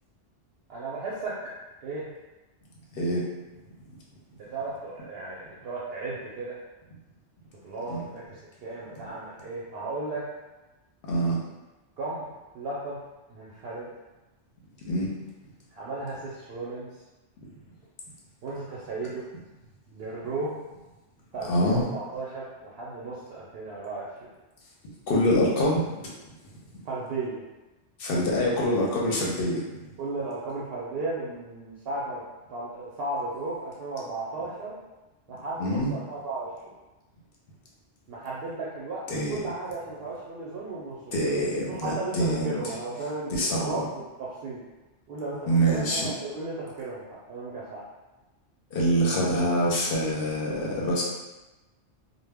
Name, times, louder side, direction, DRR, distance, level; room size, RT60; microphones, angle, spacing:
voice 1, 0.7-1.3 1.8-2.0 4.3-6.6 7.6-10.2 12.0-12.3 12.5-13.0 13.3-13.9 15.7-16.9 18.4-19.2 19.9-20.5 21.3-24.1 26.8-27.4 30.0-32.2 32.5-34.8 35.3-36.7 38.1-41.1 41.7-44.6 45.1-47.0 47.3-47.8, right 3 dB, 65° right, -6 dB, 0.7 m, -35 dB
voice 2, 11.1-11.4 14.9-15.1 21.5-21.8 24.8-26.1 28.0-29.8 35.6-35.9 39.1-39.4 41.1-42.6 43.3-43.8 45.5-46.1 48.7-51.0, equal, 60° left, -3 dB, 0.7 m, -25 dB
2.1 x 2.0 x 3.4 m, 1.1 s
omnidirectional pair, 1.2 m